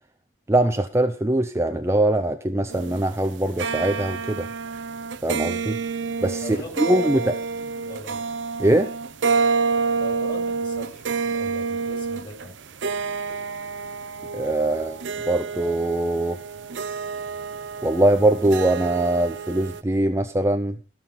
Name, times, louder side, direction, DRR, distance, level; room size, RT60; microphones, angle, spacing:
voice 1, 0.5-4.5 5.2-5.8 6.2-6.4 6.8-7.2 8.6-8.9 14.3-16.4 17.8-20.8, right 1 dB, 15° right, 7 dB, 0.6 m, -22 dB
sound 1, 2.7-19.8, right 5 dB, 85° right, 0.7 m, -28 dB
voice 2, 6.4-8.2 10.0-12.6, left 2 dB, 25° left, 2 dB, 4.4 m, -40 dB
14.5 x 6.0 x 5.6 m, 0.36 s
head